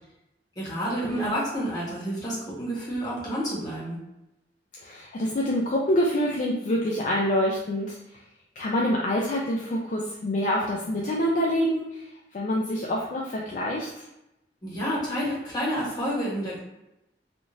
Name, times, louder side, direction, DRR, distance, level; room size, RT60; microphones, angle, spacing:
voice 1, 0.5-4.0 14.6-16.6, equal, 20° left, -8 dB, 1.3 m, -29 dB
voice 2, 4.8-8.0 8.6-14.1, equal, 45° left, -3 dB, 0.4 m, -26 dB
3.6 x 2.4 x 2.5 m, 0.89 s
head